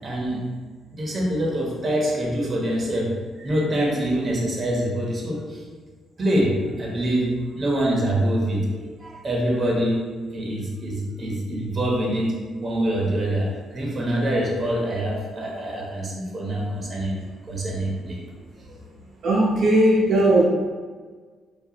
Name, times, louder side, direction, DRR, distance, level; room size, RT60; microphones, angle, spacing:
voice 1, 0.0-0.4 0.9-5.6 6.2-7.3 7.5-10.0 10.3-12.3 12.6-17.2 17.5-18.2, right 1 dB, 35° right, -3 dB, 1.1 m, -25 dB
voice 2, 19.2-20.4, right 1 dB, 65° right, -6 dB, 0.8 m, -17 dB
4.7 x 2.5 x 2.9 m, 1.5 s
cardioid pair, 90°, 0 cm